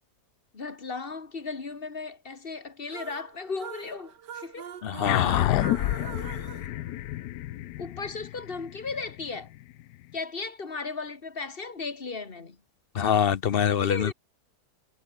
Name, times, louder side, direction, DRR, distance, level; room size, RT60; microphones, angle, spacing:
voice 1, 0.5-4.7 7.8-9.5 10.1-12.6 13.8-14.1, left 4 dB, 35° left, 2.1 m, -36 dB
sound 1, 2.9-7.6, right 8 dB, 85° right, 2.0 m, -43 dB
voice 2, 4.8-5.7 6.2-6.3 12.9-14.1, left 8 dB, 55° left, 0.6 m, -25 dB
sound 2, 5.0-9.8, left 15 dB, 75° left, 1.2 m, -29 dB
omnidirectional pair, 1.8 m